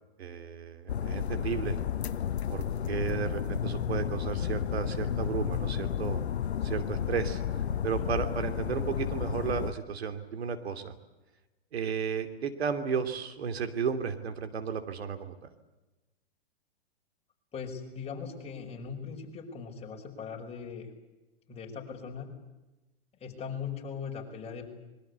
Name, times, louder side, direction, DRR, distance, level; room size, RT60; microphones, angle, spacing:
voice 1, 0.2-1.8 2.5-6.2 6.6-7.4 7.8-10.9 11.7-15.3, right 6 dB, 70° right, 8 dB, 2.9 m, -33 dB
sound 1, 0.9-9.7, left 9 dB, 80° left, 1.0 m, -32 dB
voice 2, 17.5-20.9 21.5-22.3 23.2-24.7, left 6 dB, 20° left, 1 dB, 5.7 m, -39 dB
25.0 x 22.5 x 8.2 m, 1.1 s
hypercardioid pair, 120°, 32 cm